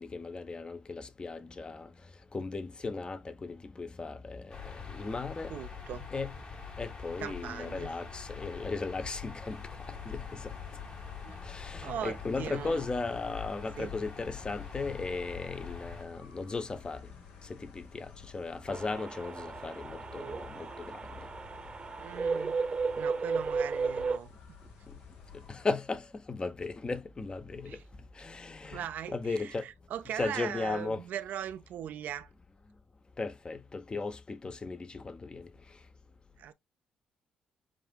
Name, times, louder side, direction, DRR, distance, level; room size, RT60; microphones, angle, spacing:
voice 1, 0.0-1.9 2.3-5.5 6.1-6.4 6.8-9.6 9.9-10.5 11.4-17.1 17.4-21.2 25.3-27.8 28.1-29.7 30.1-31.0 33.2-35.5, left 3 dB, 30° left, 0.8 m, -36 dB
sound 1, 4.5-16.0, left 6 dB, 50° left, 1.9 m, -44 dB
voice 2, 5.5-6.1 7.2-7.9 11.2-11.4 11.8-12.8 13.8-13.9 22.0-22.6 22.9-24.3 27.7-27.8 28.6-29.2 29.9-32.3 36.4-36.5, right 10 dB, 70° right, 0.5 m, -39 dB
sound 2, 9.4-25.6, left 6 dB, 75° left, 1.2 m, -53 dB
sound 3, 18.7-24.2, right 4 dB, 35° right, 0.8 m, -34 dB
7.3 x 2.6 x 2.3 m
hypercardioid pair, 50°, 3 cm